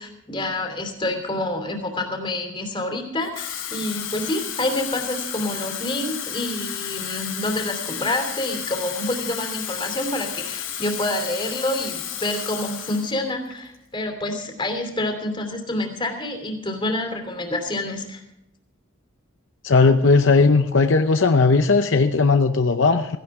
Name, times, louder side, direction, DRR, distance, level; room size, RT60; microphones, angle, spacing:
voice 1, 0.0-18.2, left 1 dB, 25° left, 4 dB, 2.9 m, -27 dB
Water tap faucet / Fill (with liquid), 3.2-13.1 13.5-13.8, left 9 dB, 80° left, 4.1 m, -32 dB
voice 2, 19.6-23.2, left 4 dB, 65° left, 7 dB, 0.7 m, -17 dB
17.0 x 16.0 x 3.7 m, 0.82 s
head